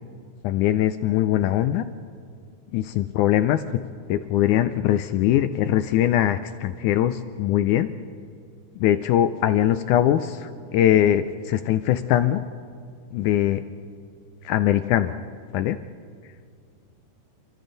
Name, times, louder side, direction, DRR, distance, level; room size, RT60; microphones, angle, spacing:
voice 1, 0.4-1.9 2.7-3.6 4.1-7.9 8.8-12.4 13.1-13.6 14.5-15.2 15.5-15.8, left 12 dB, 90° left, 10 dB, 1.7 m, -21 dB
30.0 x 24.0 x 4.0 m, 2.2 s
omnidirectional pair, 4.2 m